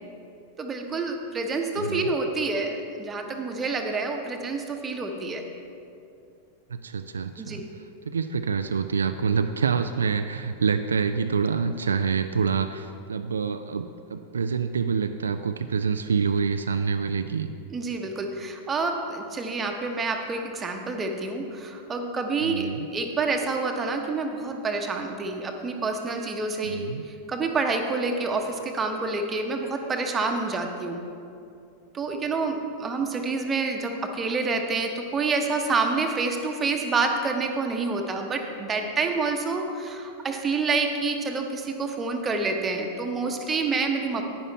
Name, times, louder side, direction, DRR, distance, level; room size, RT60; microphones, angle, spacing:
voice 1, 0.6-5.4 7.4-7.7 17.7-31.0 31.9-44.2, right 3 dB, 20° right, 3 dB, 1.1 m, -28 dB
voice 2, 6.7-7.6 8.1-17.5 22.4-22.9 26.6-27.0, right 5 dB, 70° right, 8 dB, 0.3 m, -26 dB
10.0 x 9.6 x 4.2 m, 2.5 s
figure-of-eight pair, 90°, 0 cm